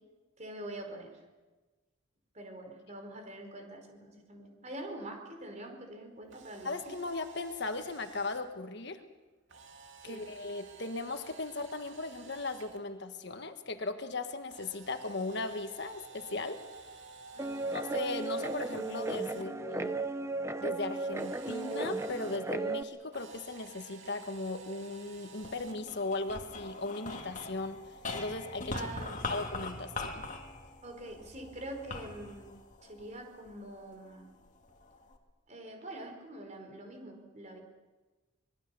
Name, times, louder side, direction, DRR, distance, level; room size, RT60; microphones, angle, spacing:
voice 1, 0.4-1.2 2.3-6.9 10.0-10.2 17.3-17.7 19.3-19.4 28.7-29.2 30.8-32.5 32.8-34.3 35.5-37.6, right 1 dB, 35° right, 4 dB, 4.6 m, -45 dB
Camera, 6.2-8.4 9.5-12.8 14.5-19.4 21.1-22.4 23.1-25.8, right 4 dB, 60° right, 2.5 m, -52 dB
voice 2, 6.6-9.0 10.0-16.6 17.7-20.0 20.6-27.8 28.1-28.9 29.3-30.2, left 3 dB, 55° left, 7 dB, 1.4 m, -37 dB
Guitar, 17.4-22.8, right 2 dB, 15° right, 0.8 m, -35 dB
sound 1, 25.4-33.8 34.4-35.2, left 3 dB, 35° left, 2.2 m, -42 dB
25.5 x 22.0 x 7.0 m, 1.2 s
head